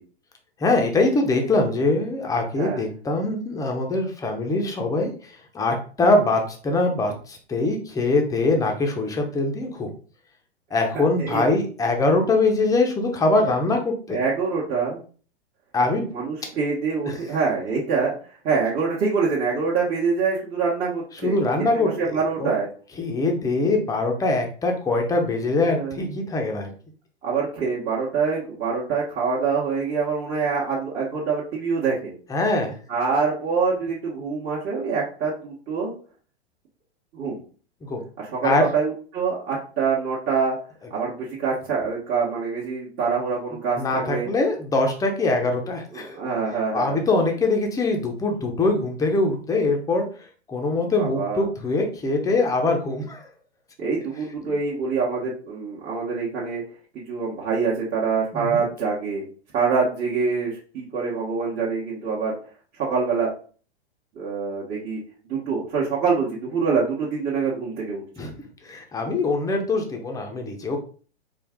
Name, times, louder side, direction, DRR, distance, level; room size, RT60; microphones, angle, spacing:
voice 1, 0.6-9.9 10.7-14.2 15.7-16.1 17.0-17.2 21.2-21.9 22.4-22.5 23.0-26.7 32.3-32.7 37.8-38.0 38.4-38.7 43.8-46.1 46.7-50.0 50.5-53.3 58.3-58.6 68.2-68.3 68.6-70.8, left 2 dB, 10° left, 2 dB, 0.7 m, -23 dB
voice 2, 2.6-2.9 10.9-11.5 14.1-15.0 16.1-18.1 18.4-21.3 21.7-22.7 25.6-26.1 27.2-32.1 32.9-35.9 37.1-37.4 38.2-40.6 40.9-44.3 45.9-47.0 51.0-51.5 53.8-56.6 56.9-59.3 59.5-62.4 62.8-63.3 64.1-65.0 65.2-68.0, right 5 dB, 30° right, -7 dB, 1.3 m, -25 dB
4.4 x 2.4 x 3.6 m, 0.40 s
hypercardioid pair, 120°, 32 cm